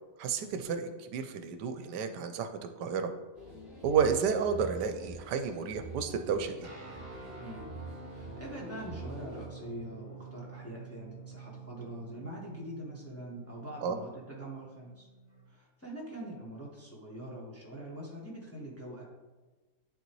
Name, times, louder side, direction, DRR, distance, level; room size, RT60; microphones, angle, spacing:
voice 1, 0.2-2.5 2.8-3.1 3.8-6.7 13.8-14.0, right 6 dB, 80° right, 8 dB, 1.2 m, -31 dB
sound 1, 3.3-9.5, right 2 dB, 30° left, 1.8 m, -46 dB
sound 2, 6.6-15.5, right 4 dB, 40° right, 1.1 m, -49 dB
voice 2, 8.1-15.1 15.5-19.1, right 1 dB, 10° left, -4 dB, 1.1 m, -44 dB
11.0 x 3.9 x 3.1 m, 1.2 s
omnidirectional pair, 1.8 m